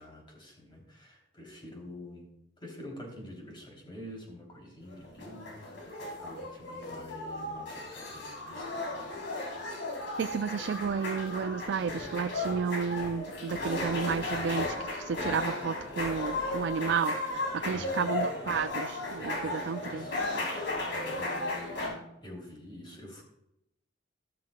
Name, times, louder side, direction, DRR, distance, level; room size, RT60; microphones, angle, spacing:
voice 1, 0.0-2.3 2.6-9.1 17.7-18.1 19.4-20.2 20.5-23.2, left 1 dB, 25° left, -1 dB, 3.0 m, -47 dB
sound 1, 4.9-21.9, left 2 dB, 75° left, 3.4 m, -35 dB
voice 2, 10.2-20.3, right 6 dB, 60° right, 10 dB, 0.3 m, -32 dB
13.0 x 13.0 x 2.2 m, 0.82 s
head